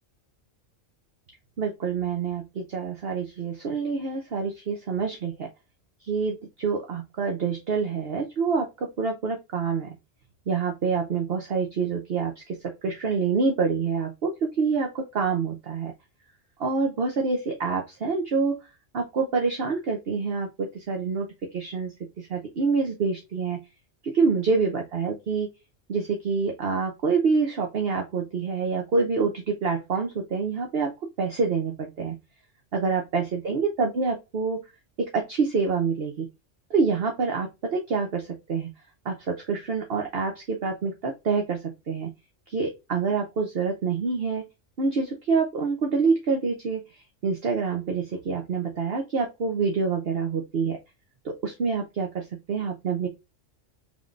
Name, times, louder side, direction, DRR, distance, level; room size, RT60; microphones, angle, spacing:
voice 1, 1.6-5.5 6.0-9.9 10.5-15.9 16.6-18.6 18.9-21.3 21.5-23.6 24.0-25.5 25.9-30.9 31.2-32.1 32.7-34.6 35.0-36.3 36.7-38.7 39.0-41.6 41.9-42.1 42.5-44.4 44.8-50.8 51.2-53.1, right 5 dB, 55° right, 2 dB, 1.0 m, -26 dB
5.1 x 3.6 x 2.5 m, 0.24 s
omnidirectional pair, 1.3 m